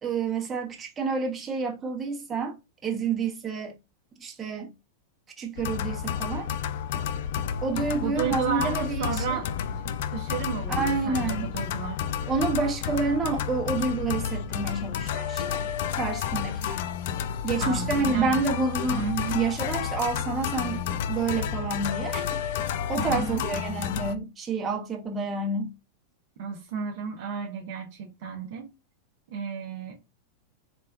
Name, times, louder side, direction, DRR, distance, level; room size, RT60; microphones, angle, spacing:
voice 1, 0.0-2.5 2.8-3.8 4.2-4.7 5.4-6.5 7.6-9.4 10.7-11.5 12.3-16.9 17.4-22.2 22.9-25.7, right 4 dB, 20° right, 1.1 m, -29 dB
sound 1, 5.6-24.2, left 8 dB, 50° left, 0.3 m, -31 dB
voice 2, 8.0-12.0 17.6-18.4 18.9-19.4 23.0-23.5 26.4-28.7 29.3-30.1, right 6 dB, 50° right, 0.8 m, -33 dB
4.1 x 3.3 x 2.3 m
figure-of-eight pair, 90°, 0 cm